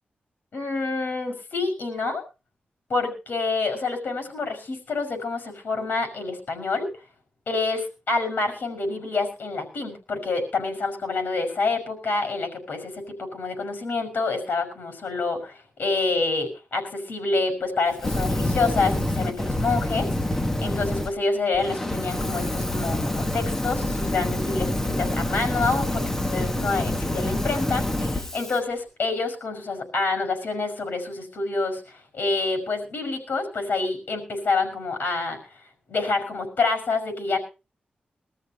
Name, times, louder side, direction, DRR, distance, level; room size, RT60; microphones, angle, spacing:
voice 1, 0.5-2.2 2.9-6.9 7.5-35.4 35.9-37.4, left 3 dB, 65° left, 6 dB, 5.6 m, -27 dB
Fire, 18.0-21.1 21.5-28.6, left 1 dB, 10° left, 1.1 m, -27 dB
22.0 x 13.5 x 2.9 m, 0.30 s
wide cardioid pair, 145°, 3 cm